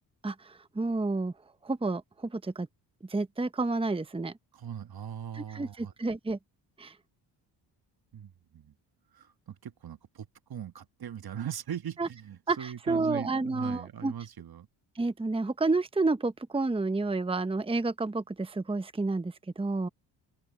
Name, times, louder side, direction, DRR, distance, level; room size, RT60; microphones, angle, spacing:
voice 1, 0.2-1.3 1.6-2.7 3.1-4.3 5.3-6.4 6.8-6.9 12.0-12.1 12.5-14.1 15.0-19.9, right 3 dB, 10° right, 1.0 m, -30 dB
voice 2, 4.5-5.9 8.1-8.7 9.1-14.7, right 9 dB, 50° right, 1.5 m, -40 dB
open air
supercardioid pair, 55°, 47 cm